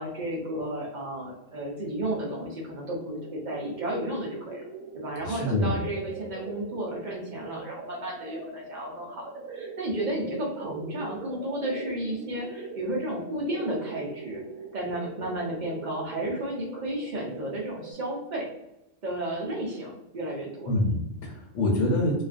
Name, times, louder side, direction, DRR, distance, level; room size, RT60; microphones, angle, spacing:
voice 1, 0.0-4.6 4.9-14.4 14.7-18.5 19.0-20.8, right 1 dB, 55° right, -2 dB, 0.5 m, -33 dB
sound 1, 2.7-17.9, right 4 dB, 85° right, 1.0 m, -42 dB
voice 2, 5.2-5.7 20.7-22.2, left 1 dB, 70° left, -2 dB, 0.9 m, -26 dB
2.3 x 2.3 x 2.4 m, 0.91 s
omnidirectional pair, 1.4 m